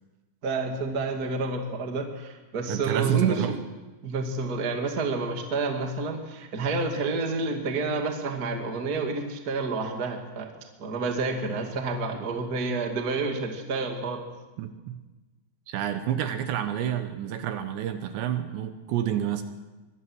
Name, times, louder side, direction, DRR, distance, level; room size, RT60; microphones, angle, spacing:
voice 1, 0.4-3.4 4.0-10.5 10.8-14.2, right 3 dB, 30° right, 3 dB, 1.7 m, -29 dB
voice 2, 2.7-3.6 14.6-15.0 15.7-19.4, right 10 dB, 75° right, 8 dB, 3.1 m, -28 dB
24.0 x 20.5 x 6.3 m, 1.2 s
omnidirectional pair, 5.5 m